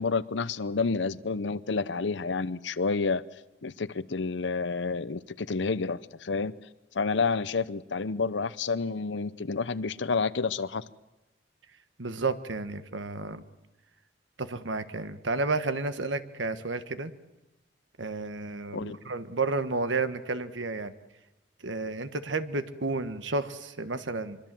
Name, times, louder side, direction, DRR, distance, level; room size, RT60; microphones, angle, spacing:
voice 1, 0.0-3.2 3.6-6.5 6.9-10.8 18.7-19.0, left 4 dB, 70° left, 16 dB, 0.8 m, -29 dB
voice 2, 12.0-13.4 14.4-17.1 18.0-20.9 21.6-24.4, right 3 dB, 75° right, 11 dB, 1.4 m, -31 dB
24.5 x 23.5 x 7.6 m, 0.99 s
head